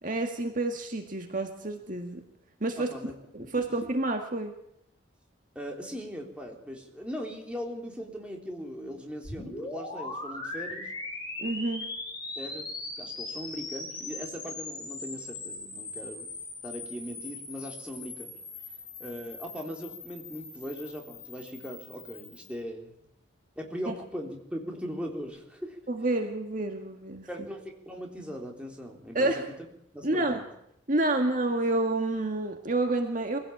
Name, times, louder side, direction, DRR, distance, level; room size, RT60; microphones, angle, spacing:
voice 1, 0.0-2.2 2.6-2.9 3.3-4.5 11.4-11.9 23.9-24.0 25.9-27.3 29.1-29.4 30.0-30.4 30.9-33.4, right 2 dB, 40° right, 4 dB, 1.9 m, -29 dB
voice 2, 5.6-10.9 12.4-12.7 13.0-16.3 16.6-18.4 19.0-22.9 23.6-25.8 27.3-29.4 29.9-30.5, equal, 5° right, 0 dB, 3.7 m, -39 dB
sound 1, 9.2-22.6, left 2 dB, 20° left, 5.6 m, -40 dB
23.5 x 16.5 x 8.7 m, 0.77 s
head